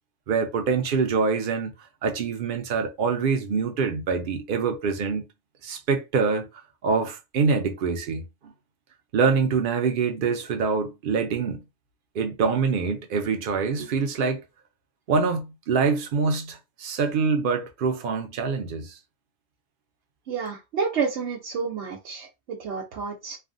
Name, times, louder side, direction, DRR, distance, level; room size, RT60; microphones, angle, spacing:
voice 1, 0.3-1.7 2.0-5.2 5.6-6.5 6.8-8.2 9.1-11.6 12.1-14.4 15.1-19.0, right 5 dB, 55° right, 0.7 m, -25 dB
voice 2, 20.3-23.4, right 5 dB, 85° right, 1.0 m, -30 dB
3.3 x 2.2 x 2.5 m
omnidirectional pair, 1.1 m